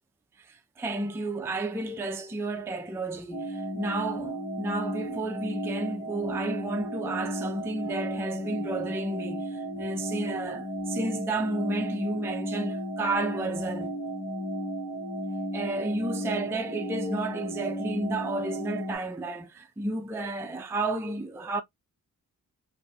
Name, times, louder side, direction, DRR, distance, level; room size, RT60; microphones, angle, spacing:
voice 1, 0.4-13.9 15.5-21.6, right 2 dB, 10° right, 0.4 m, -32 dB
sound 1, 3.3-19.0, equal, 85° left, 1.6 m, -34 dB
3.3 x 2.6 x 2.3 m
cardioid pair, 95°, 34 cm